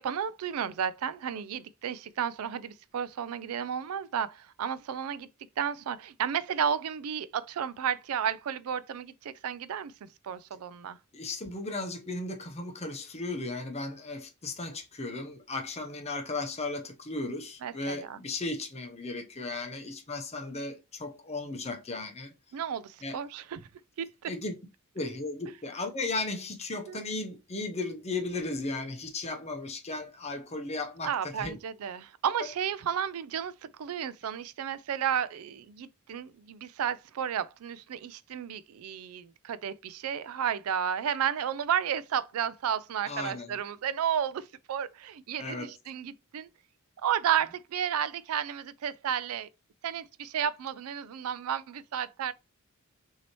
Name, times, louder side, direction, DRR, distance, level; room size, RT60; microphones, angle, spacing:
voice 1, 0.0-5.3 5.6-11.0 17.6-18.2 22.5-23.7 24.0-24.3 26.9-27.0 31.0-46.5 47.0-49.5 49.8-52.3, right 8 dB, 75° right, 0.4 m, -32 dB
voice 2, 11.1-22.3 23.0-23.2 24.3-24.5 24.9-31.6 43.1-43.6 45.4-45.7, left 2 dB, 30° left, 0.8 m, -35 dB
6.0 x 2.8 x 3.0 m
head